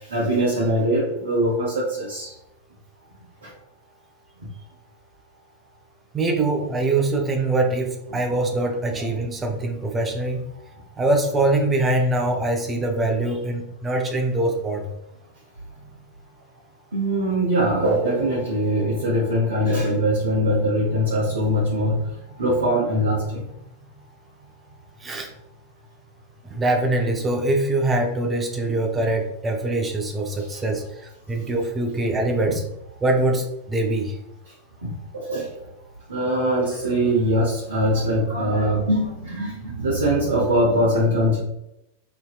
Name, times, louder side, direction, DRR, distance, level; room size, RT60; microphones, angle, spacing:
voice 1, 0.1-2.3 3.4-3.5 9.0-9.1 16.9-22.0 22.4-23.4 32.5-32.6 34.8-35.5 36.1-41.4, equal, 70° right, -6 dB, 0.8 m, -22 dB
voice 2, 6.1-10.4 11.0-14.9 25.0-25.3 26.4-32.6 33.0-34.2, right 2 dB, 15° right, 3 dB, 0.5 m, -23 dB
3.1 x 2.7 x 2.4 m, 0.86 s
figure-of-eight pair, 90°, 0 cm